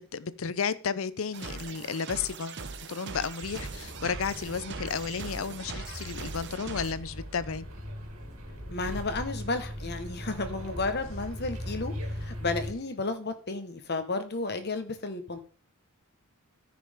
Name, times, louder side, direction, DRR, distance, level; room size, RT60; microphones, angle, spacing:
voice 1, 0.1-2.6 2.9-7.7, left 6 dB, 70° left, 17 dB, 0.6 m, -33 dB
sound 1, 1.3-6.9, right 4 dB, 55° right, 1.1 m, -41 dB
sound 2, 3.4-12.7, equal, 85° right, 2.9 m, -39 dB
voice 2, 8.7-15.4, left 3 dB, 50° left, 8 dB, 1.4 m, -33 dB
14.5 x 6.0 x 3.6 m, 0.40 s
head